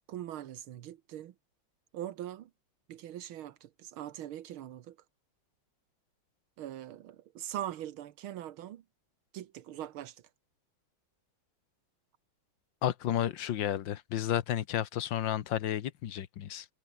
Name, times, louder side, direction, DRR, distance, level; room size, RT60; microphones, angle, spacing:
voice 1, 0.1-1.3 1.9-2.5 2.9-5.0 6.6-8.8 9.3-10.2, right 12 dB, 85° right, 1.8 m, -41 dB
voice 2, 12.8-16.7, left 11 dB, 65° left, 1.7 m, -32 dB
omnidirectional pair, 2.2 m